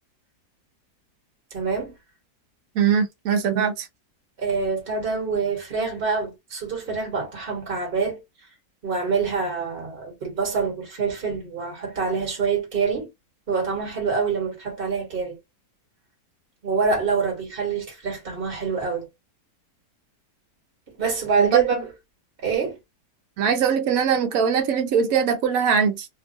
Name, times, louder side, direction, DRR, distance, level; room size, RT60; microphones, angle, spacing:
voice 1, 1.5-1.9 4.4-8.2 8.8-13.1 13.5-15.4 16.6-19.1 21.0-21.9 22.4-22.8, right 5 dB, 35° right, 1.5 m, -25 dB
voice 2, 2.7-3.9 21.4-21.6 23.4-26.1, right 7 dB, 65° right, 1.1 m, -21 dB
2.9 x 2.4 x 2.6 m
omnidirectional pair, 1.7 m